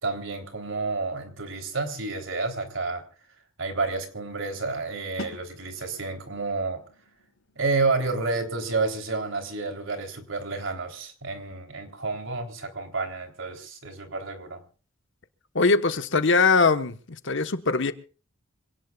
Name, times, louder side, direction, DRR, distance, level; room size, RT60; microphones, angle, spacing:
voice 1, 0.0-3.0 3.6-6.8 7.5-14.6, right 3 dB, 70° right, 3.5 m, -30 dB
sound 1, 5.2-10.9, left 2 dB, 85° left, 3.8 m, -47 dB
voice 2, 15.5-17.9, left 4 dB, 65° left, 1.2 m, -22 dB
26.5 x 18.0 x 2.4 m
head